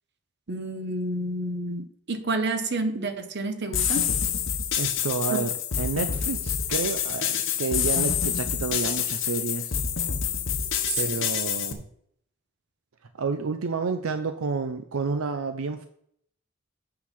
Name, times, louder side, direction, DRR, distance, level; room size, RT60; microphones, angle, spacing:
voice 1, 0.5-4.1 5.3-5.4, right 2 dB, 55° right, 8 dB, 1.0 m, -29 dB
sound 1, 3.7-11.7, left 8 dB, 60° left, 0.9 m, -27 dB
voice 2, 4.8-9.8 11.0-11.8 13.2-15.9, right 4 dB, 80° right, 8 dB, 0.5 m, -30 dB
8.7 x 3.9 x 5.9 m, 0.67 s
head